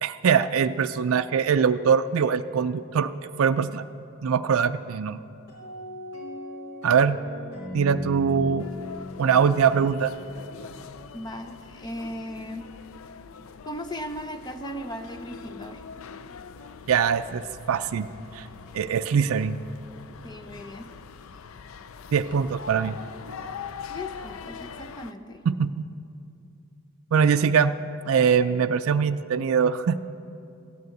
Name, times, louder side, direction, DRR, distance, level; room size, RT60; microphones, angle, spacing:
voice 1, 0.0-3.1 3.4-3.8 4.2-5.2 6.8-7.2 7.7-8.7 9.2-10.1 16.9-18.1 18.3-18.5 18.7-19.6 22.1-23.0 25.5-25.7 27.1-27.7 28.1-30.0, right 6 dB, 70° right, 9 dB, 0.4 m, -22 dB
sound 1, 5.5-10.6, left 2 dB, 80° left, 4.0 m, -38 dB
sound 2, 8.6-25.1, left 6 dB, 65° left, 0.4 m, -43 dB
voice 2, 11.1-12.7 13.7-15.9 20.2-20.9 23.9-25.4, equal, 20° left, 7 dB, 0.6 m, -37 dB
14.0 x 9.5 x 7.8 m, 2.6 s
head